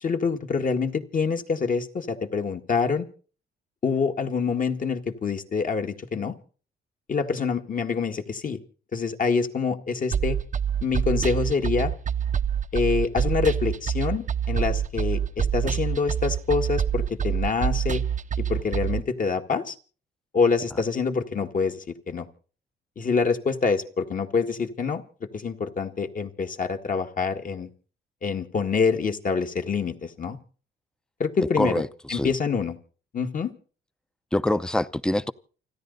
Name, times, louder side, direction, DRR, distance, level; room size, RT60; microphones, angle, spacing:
voice 1, 0.0-3.1 3.8-6.4 7.1-8.6 8.9-10.4 10.8-11.9 12.7-18.0 18.4-19.8 20.3-22.3 23.0-25.0 25.3-27.7 28.2-30.4 31.2-31.8 32.1-32.8 33.1-33.5, left 5 dB, 40° left, 1.9 m, -26 dB
sound 1, 10.1-19.0, right 8 dB, 40° right, 0.7 m, -26 dB
voice 2, 31.6-32.3 34.3-35.3, left 1 dB, 5° left, 0.7 m, -25 dB
29.0 x 10.5 x 4.0 m
cardioid pair, 90°, 20 cm